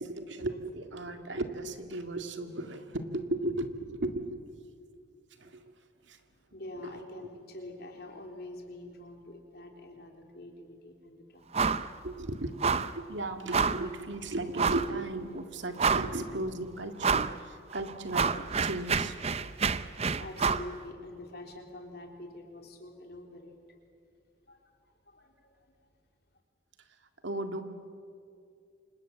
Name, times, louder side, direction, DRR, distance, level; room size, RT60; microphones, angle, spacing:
voice 1, 0.0-4.4 5.4-5.6 6.0-6.2 6.8-6.9 12.0-19.2 27.2-27.6, right 2 dB, 75° right, 7 dB, 2.0 m, -36 dB
voice 2, 6.3-11.6 19.7-23.8 24.5-25.7, left 1 dB, 55° left, 3 dB, 3.5 m, -46 dB
sound 1, 11.5-11.9 12.2-12.3 12.6-13.0 13.5-13.9 14.6-14.9 15.4-15.5 15.8-16.3 17.0-17.4 17.7-20.7, right 5 dB, 35° right, 0.6 m, -28 dB
29.0 x 26.0 x 7.6 m, 2.4 s
head